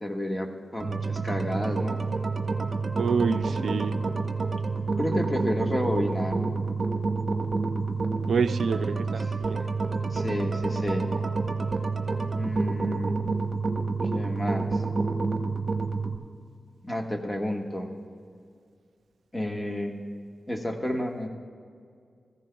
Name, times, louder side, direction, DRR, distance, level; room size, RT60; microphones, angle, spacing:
voice 1, 0.0-2.0 3.6-4.0 5.0-6.4 8.7-9.0 10.1-11.1 12.3-13.2 14.1-14.8 16.8-17.9 19.3-20.0 20.5-21.3, left 1 dB, 25° left, 2 dB, 1.3 m, -31 dB
sound 1, 0.8-16.2, right 4 dB, 50° right, 1.0 m, -28 dB
voice 2, 3.0-3.9 8.3-9.6, right 5 dB, 90° right, 10 dB, 0.4 m, -27 dB
17.0 x 15.0 x 2.3 m, 2.2 s
wide cardioid pair, 75°, 0 cm